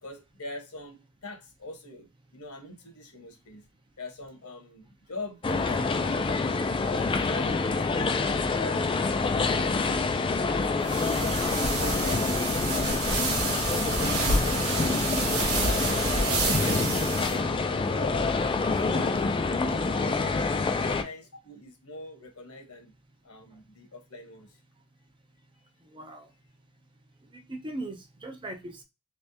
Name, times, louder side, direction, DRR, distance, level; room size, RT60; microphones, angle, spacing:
voice 1, 0.0-3.6 4.0-6.5 6.8-8.2 8.5-9.0 9.4-11.3 11.7-14.9 15.4-18.3 18.8-19.2 19.7-22.9 23.2-24.6, left 2 dB, 70° left, 1.3 m, -43 dB
sound 1, 5.4-21.0, left 3 dB, 25° left, 0.3 m, -27 dB
sound 2, 10.8-17.4, right 3 dB, 70° right, 1.0 m, -29 dB
voice 2, 25.9-26.3 27.3-28.8, right 1 dB, 20° right, 0.6 m, -39 dB
3.4 x 3.2 x 2.7 m
head